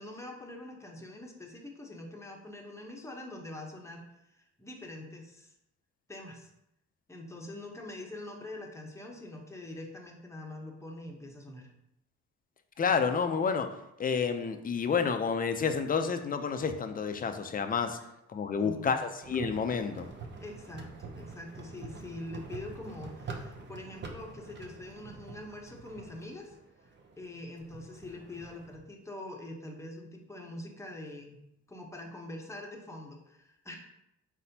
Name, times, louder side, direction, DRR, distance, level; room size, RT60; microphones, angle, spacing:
voice 1, 0.0-5.5 6.1-6.5 7.1-11.7 18.5-19.0 20.4-26.6 27.2-31.4 31.7-33.8, left 1 dB, 10° left, 1 dB, 0.9 m, -44 dB
voice 2, 12.8-13.7 14.0-18.0 18.3-20.1, left 6 dB, 30° left, 7 dB, 0.5 m, -29 dB
sound 1, 19.2-28.8, right 4 dB, 35° right, 0.7 m, -46 dB
4.3 x 4.1 x 2.7 m, 0.82 s
cardioid pair, 90°, 30 cm